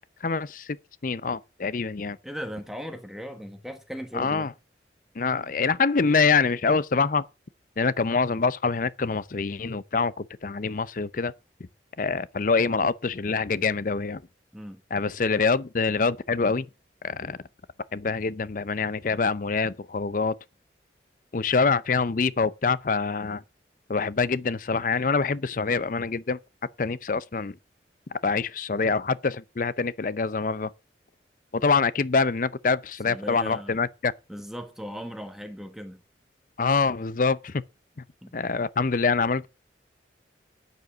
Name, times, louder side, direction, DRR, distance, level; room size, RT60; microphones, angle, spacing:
voice 1, 0.2-0.8 1.0-2.2 4.1-4.5 5.2-7.3 7.8-11.3 12.0-14.2 14.9-16.7 17.0-17.4 17.9-20.3 21.3-23.4 23.9-26.4 26.8-27.6 28.2-30.7 31.5-34.1 36.6-37.6 38.3-39.5, left 4 dB, 45° left, 0.5 m, -25 dB
voice 2, 2.2-4.5 14.5-14.8 33.0-33.8 34.3-36.0 38.2-38.4, equal, ahead, 1.2 m, -38 dB
9.4 x 7.8 x 6.1 m
head